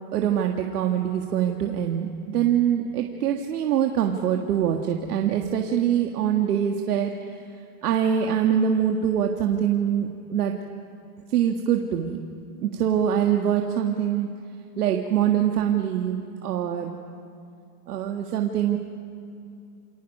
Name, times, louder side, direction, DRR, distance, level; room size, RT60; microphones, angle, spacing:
voice 1, 0.1-7.4 7.8-10.5 11.3-12.2 12.6-14.3 14.8-17.0 17.9-18.8, right 9 dB, 85° right, 2 dB, 1.8 m, -24 dB
29.0 x 23.5 x 5.5 m, 2.5 s
supercardioid pair, 160°, 45 cm